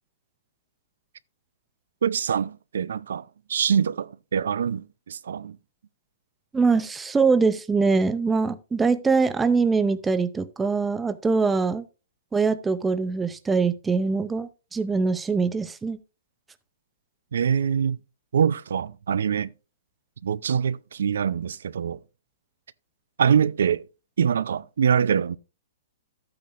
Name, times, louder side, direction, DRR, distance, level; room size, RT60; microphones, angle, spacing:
voice 1, 2.0-5.6 17.3-18.0 18.3-19.5 20.2-22.0 23.2-23.9 24.2-25.4, right 7 dB, 75° right, 0.5 m, -24 dB
voice 2, 6.5-11.9 12.3-16.0, right 4 dB, 10° right, 0.5 m, -23 dB
12.0 x 8.6 x 2.5 m
hypercardioid pair, 165°, 0 cm